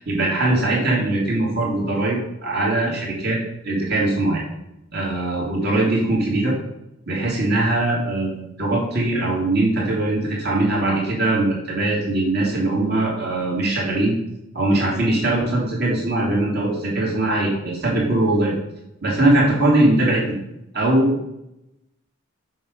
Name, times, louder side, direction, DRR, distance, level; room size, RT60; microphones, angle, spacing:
voice 1, 0.0-3.4 3.6-4.4 4.9-6.6 7.1-14.1 14.5-18.5 19.0-20.4 20.7-21.1, right 2 dB, 50° right, -3 dB, 3.1 m, -21 dB
7.6 x 6.5 x 5.3 m, 0.86 s
head